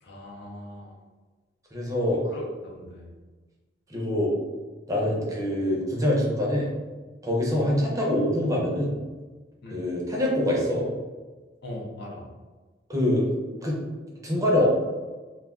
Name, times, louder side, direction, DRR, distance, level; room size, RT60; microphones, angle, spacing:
voice 1, 0.0-1.0 2.1-3.1 5.0-5.2 7.5-7.7 9.6-9.8 11.6-12.3, left 1 dB, 65° left, -2 dB, 0.6 m, -40 dB
voice 2, 1.7-2.2 3.9-4.3 4.9-6.7 7.2-9.0 9.7-10.9 12.9-13.3 13.6-13.8 14.2-14.7, left 1 dB, 20° right, -3 dB, 0.6 m, -24 dB
2.3 x 2.2 x 3.5 m, 1.3 s
head